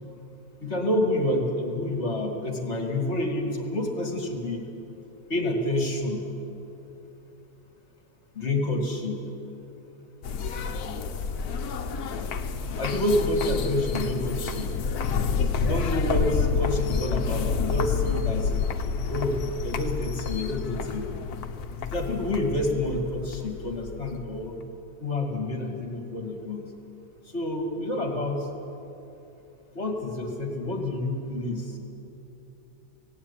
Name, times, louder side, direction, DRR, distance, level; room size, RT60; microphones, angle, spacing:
voice 1, 0.6-4.6 5.3-6.2 8.3-9.2 12.6-14.7 15.6-18.5 19.1-21.1 21.8-24.6 25.0-26.6 27.3-28.5 29.7-31.8, left 1 dB, 45° left, 2 dB, 2.4 m, -28 dB
sound 1, 10.2-24.6, left 5 dB, 70° left, 1.5 m, -29 dB
17.5 x 16.5 x 9.8 m, 2.9 s
omnidirectional pair, 1.7 m